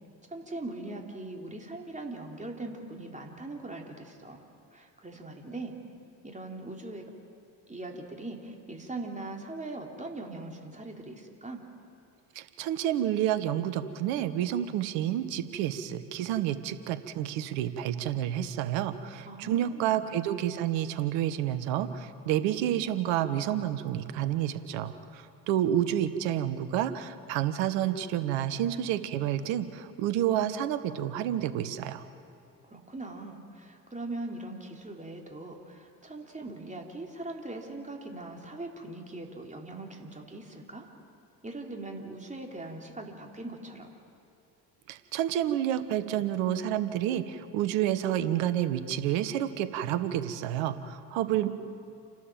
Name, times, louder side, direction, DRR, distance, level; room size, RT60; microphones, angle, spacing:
voice 1, 0.3-4.4 4.7-5.8 6.2-7.1 7.7-11.6 19.2-20.0 32.6-40.9 41.4-43.9 51.2-51.5, right 2 dB, 15° right, 1 dB, 3.6 m, -41 dB
voice 2, 12.3-32.0 44.9-51.5, right 11 dB, 70° right, 12 dB, 1.4 m, -29 dB
29.5 x 12.5 x 7.5 m, 2.8 s
hypercardioid pair, 60°, 46 cm